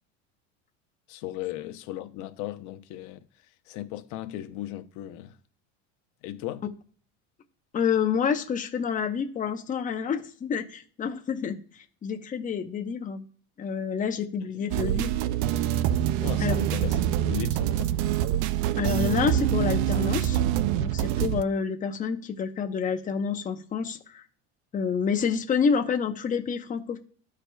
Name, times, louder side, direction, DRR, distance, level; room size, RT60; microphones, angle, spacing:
voice 1, 1.1-3.2 3.7-5.4 6.2-6.6 14.6-14.7 16.2-18.0, left 14 dB, 55° left, 0.8 m, -36 dB
voice 2, 7.7-11.6 12.0-13.2 13.6-15.2 16.4-16.6 18.8-20.4 20.7-24.2 24.7-27.0, left 6 dB, 25° left, 0.8 m, -28 dB
sound 1, 14.7-21.4, right 12 dB, 55° right, 0.4 m, -25 dB
13.0 x 4.9 x 2.3 m
supercardioid pair, 130°, 35 cm